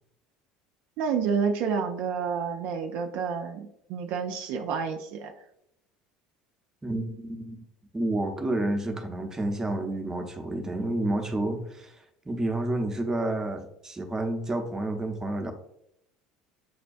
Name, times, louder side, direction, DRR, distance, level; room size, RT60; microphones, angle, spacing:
voice 1, 1.0-5.3, right 6 dB, 65° right, 4 dB, 0.4 m, -29 dB
voice 2, 6.8-7.6 7.9-15.5, right 1 dB, 15° right, 3 dB, 0.7 m, -30 dB
6.2 x 2.2 x 2.5 m, 0.76 s
hypercardioid pair, 80°, 3 cm